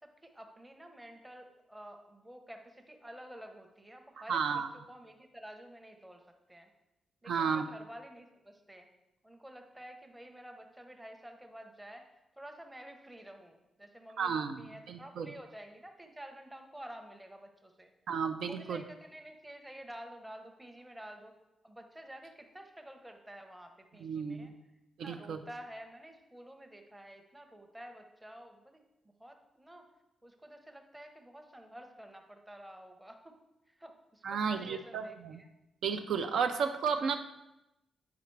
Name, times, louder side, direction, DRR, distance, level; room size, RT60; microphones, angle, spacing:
voice 1, 0.0-6.7 7.2-8.9 9.2-17.9 18.4-21.3 21.6-24.5 25.0-28.8 29.2-29.9 30.2-33.4 33.7-35.5, right 1 dB, 10° right, 4 dB, 0.7 m, -50 dB
voice 2, 4.3-4.7 7.3-7.7 14.2-15.3 18.1-18.8 24.0-24.5 25.0-25.4 34.2-35.4 35.8-37.2, right 6 dB, 70° right, 7 dB, 0.5 m, -33 dB
9.5 x 4.9 x 4.5 m, 0.93 s
wide cardioid pair, 180°, 0 cm